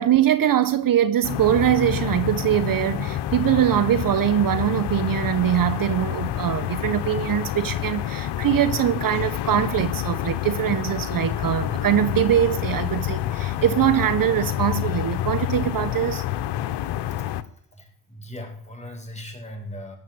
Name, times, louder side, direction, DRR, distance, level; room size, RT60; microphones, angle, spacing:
voice 1, 0.0-16.2, right 11 dB, 50° right, 1.0 m, -22 dB
sound 1, 1.2-17.4, left 12 dB, 65° left, 1.1 m, -28 dB
voice 2, 16.6-17.3 17.7-20.0, left 1 dB, 15° left, 6.9 m, -39 dB
17.5 x 7.5 x 8.0 m
supercardioid pair, 65°, 44 cm